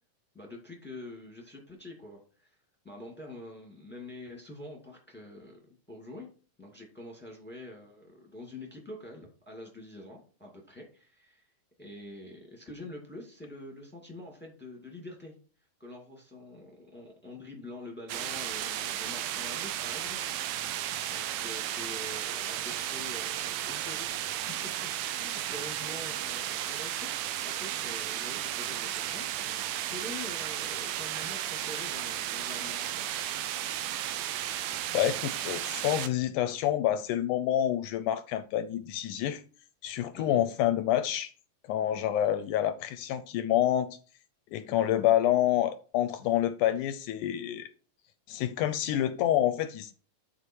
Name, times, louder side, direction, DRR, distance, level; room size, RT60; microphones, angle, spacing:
voice 1, 0.3-2.6 2.8-6.3 6.6-11.5 11.8-15.3 15.8-20.2 21.1-24.9 25.2-27.1 27.4-33.0 40.1-40.5 44.7-45.0, left 2 dB, 5° left, 1.2 m, -46 dB
sound 1, 18.1-36.1, right 12 dB, 75° right, 2.0 m, -34 dB
voice 2, 34.9-39.4 39.8-41.3 41.7-43.9 44.5-47.7 48.3-49.9, left 12 dB, 80° left, 1.9 m, -28 dB
11.0 x 4.5 x 4.5 m
omnidirectional pair, 3.9 m